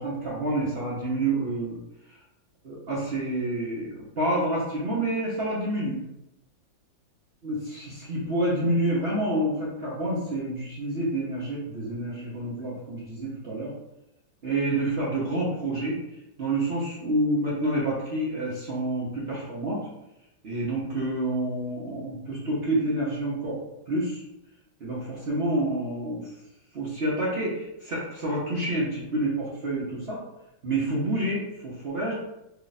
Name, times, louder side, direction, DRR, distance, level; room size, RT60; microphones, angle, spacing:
voice 1, 0.0-1.8 2.6-6.0 7.4-13.7 14.4-16.0 16.4-19.8 20.4-23.6 23.9-24.2 24.8-26.3 26.7-30.2 30.6-32.1, right 1 dB, 50° right, -7 dB, 0.7 m, -28 dB
3.3 x 2.4 x 4.0 m, 0.88 s
omnidirectional pair, 2.1 m